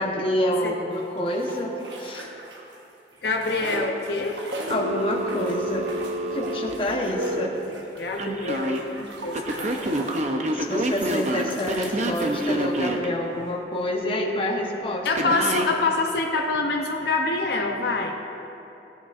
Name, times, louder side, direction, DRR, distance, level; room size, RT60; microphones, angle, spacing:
voice 1, 0.0-2.3 4.7-5.9 6.3-7.5 10.5-15.3, left 1 dB, 30° left, 0 dB, 0.9 m, -27 dB
sound 1, 0.9-2.9 3.1-10.3 10.8-12.8, right 2 dB, 90° right, 1.1 m, -40 dB
voice 2, 3.2-4.4 8.0-9.8 15.0-18.1, left 3 dB, 65° left, 2 dB, 0.7 m, -26 dB
Telephone, 4.7-7.5 8.2-8.8 9.3-13.1 15.2-15.7, right 1 dB, 40° right, 0.6 m, -27 dB
16.5 x 8.6 x 2.5 m, 3.0 s
head